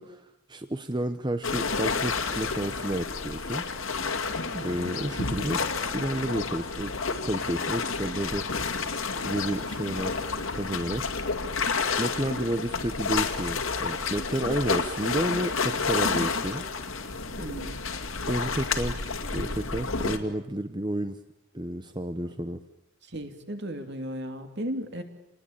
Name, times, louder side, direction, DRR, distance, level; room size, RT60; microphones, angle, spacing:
voice 1, 0.0-3.6 4.6-5.6 5.9-8.5 9.2-10.2 10.6-11.1 12.0-16.6 18.3-21.2 21.5-22.6, right 1 dB, 20° right, 8 dB, 0.9 m, -31 dB
sound 1, 1.4-20.2, left 4 dB, 70° left, 2.3 m, -30 dB
voice 2, 4.5-4.9 16.3-16.4 17.3-17.8 23.0-25.0, equal, 50° right, 7 dB, 2.8 m, -36 dB
28.5 x 20.0 x 8.8 m, 0.93 s
head